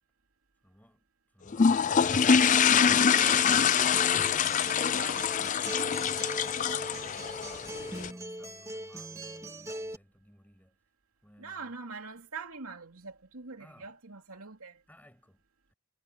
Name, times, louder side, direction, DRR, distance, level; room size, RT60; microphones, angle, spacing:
voice 1, 0.6-2.6 7.3-10.8 11.2-11.8 13.6-14.0 14.9-15.4 15.7-15.8, equal, 5° left, 7.0 m, -59 dB
sound 1, 1.5-8.1, left 7 dB, 35° left, 0.4 m, -25 dB
Acoustic guitar, 2.0-10.0, right 1 dB, 15° right, 1.8 m, -41 dB
voice 2, 4.0-5.3 11.4-14.8, right 4 dB, 70° right, 2.8 m, -44 dB
head